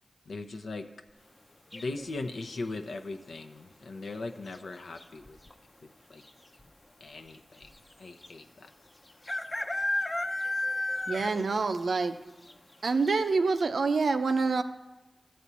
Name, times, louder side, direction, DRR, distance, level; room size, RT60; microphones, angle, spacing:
voice 1, 0.3-0.9 1.7-5.4 6.1-6.2 7.0-7.7 8.0-8.7, left 3 dB, 85° left, 7 dB, 0.7 m, -39 dB
sound 1, 1.7-2.2 4.0-4.4 4.7-4.8 5.0-5.5 6.3-6.4 6.6-6.7 8.2-8.3 9.3-11.6 11.9-12.0 12.5-12.6 13.0-13.1, left 1 dB, 30° left, 0.6 m, -32 dB
voice 2, 11.1-12.1 12.8-14.6, right 4 dB, 80° right, 8 dB, 0.5 m, -26 dB
12.5 x 4.3 x 8.3 m, 1.1 s
cardioid pair, 50°, 0 cm